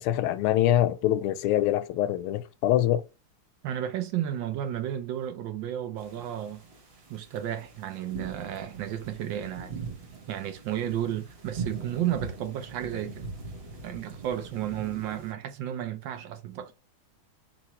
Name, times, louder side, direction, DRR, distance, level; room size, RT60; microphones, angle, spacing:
voice 1, 0.0-3.0, left 12 dB, 90° left, 1.5 m, -24 dB
voice 2, 3.6-6.6 7.1-9.7 10.3-13.3 13.8-16.7, right 11 dB, 70° right, 1.2 m, -33 dB
sound 1, 6.0-15.3, right 5 dB, 40° right, 0.9 m, -41 dB
3.7 x 2.9 x 4.2 m
omnidirectional pair, 2.3 m